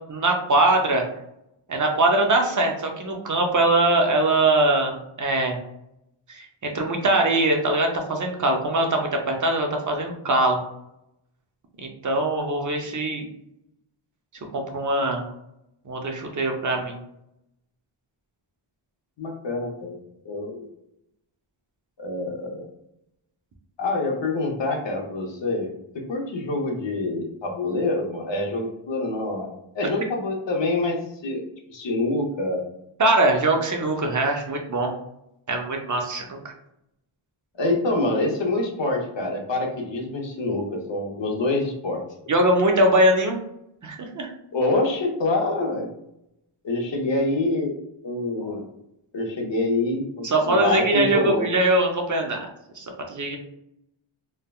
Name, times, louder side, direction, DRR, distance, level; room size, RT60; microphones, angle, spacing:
voice 1, 0.1-1.0 1.7-5.6 6.3-10.6 11.8-13.2 14.5-15.3 15.9-17.0 33.0-34.9 35.5-36.5 42.3-43.4 43.8-44.3 50.2-52.5 52.8-53.4, right 2 dB, 40° right, 2 dB, 0.6 m, -22 dB
voice 2, 19.2-20.0 20.2-20.7 22.0-22.7 23.8-31.4 31.7-32.6 37.6-42.0 44.5-45.9 46.6-47.8 48.0-48.6 49.1-51.4, left 2 dB, 60° left, 1 dB, 0.7 m, -26 dB
3.3 x 2.1 x 2.2 m, 0.81 s
wide cardioid pair, 65°, 49 cm